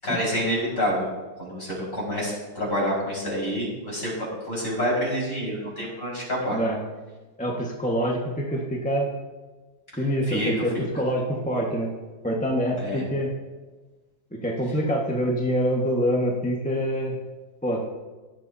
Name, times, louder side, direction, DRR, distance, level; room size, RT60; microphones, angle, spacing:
voice 1, 0.0-1.1 1.4-6.6 10.3-10.9 12.8-13.0, equal, 40° left, -5 dB, 5.4 m, -28 dB
voice 2, 7.4-9.1 10.0-11.9 12.2-13.3 14.4-17.1 17.6-17.8, equal, 5° left, -2 dB, 1.1 m, -25 dB
18.0 x 11.5 x 2.8 m, 1.2 s
omnidirectional pair, 2.2 m